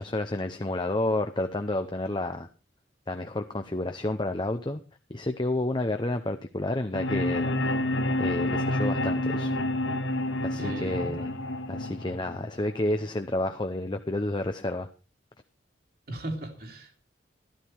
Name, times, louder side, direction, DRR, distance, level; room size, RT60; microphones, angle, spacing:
voice 1, 0.0-2.5 3.1-4.8 5.1-7.5 8.2-9.5 10.4-11.3 11.7-14.9, left 1 dB, 25° left, 7 dB, 0.7 m, -30 dB
sound 1, 6.9-12.9, left 1 dB, 80° left, 1.5 m, -29 dB
voice 2, 10.5-11.1 16.1-17.0, right 1 dB, 50° right, 3 dB, 2.8 m, -37 dB
13.0 x 12.5 x 4.6 m, 0.32 s
head